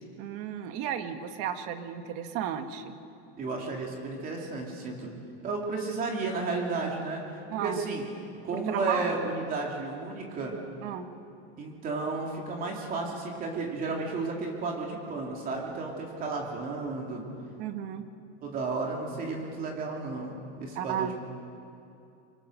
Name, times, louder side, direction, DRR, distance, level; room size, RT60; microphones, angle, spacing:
voice 1, 0.2-2.8 7.5-7.8 8.5-9.1 10.8-11.1 17.6-18.1 20.7-21.1, right 9 dB, 45° right, 7 dB, 1.6 m, -33 dB
voice 2, 3.4-5.2 5.4-7.2 7.6-8.0 8.4-10.6 11.6-17.2 18.4-21.1, right 3 dB, 25° right, 0 dB, 3.0 m, -33 dB
29.0 x 25.0 x 6.4 m, 2.6 s
cardioid pair, 175°, 32 cm